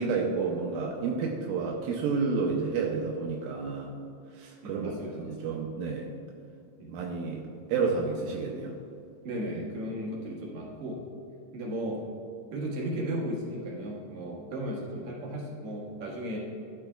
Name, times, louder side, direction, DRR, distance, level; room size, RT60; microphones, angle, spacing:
voice 1, 0.0-3.9 4.4-6.1 6.9-7.4 7.7-8.7, right 4 dB, 85° right, -1 dB, 2.4 m, -30 dB
voice 2, 4.6-5.5 6.8-6.9 9.2-11.0 11.5-12.0 12.5-16.4, right 1 dB, 60° right, -4 dB, 2.6 m, -35 dB
12.5 x 7.3 x 2.3 m, 2.6 s
omnidirectional pair, 4.0 m